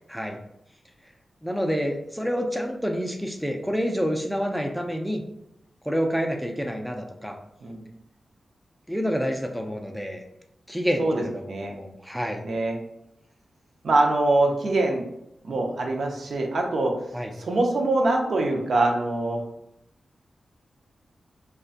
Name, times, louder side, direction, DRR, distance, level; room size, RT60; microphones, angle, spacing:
voice 1, 1.4-5.2 5.8-7.4 8.9-10.2 10.7-12.4 17.1-17.3, equal, ahead, 2 dB, 0.3 m, -28 dB
voice 2, 11.0-11.7 12.4-12.8 13.8-15.0 15.4-16.9 17.3-19.4, right 2 dB, 70° right, 2 dB, 0.4 m, -24 dB
2.6 x 2.2 x 2.4 m, 0.81 s
wide cardioid pair, 90°, 0 cm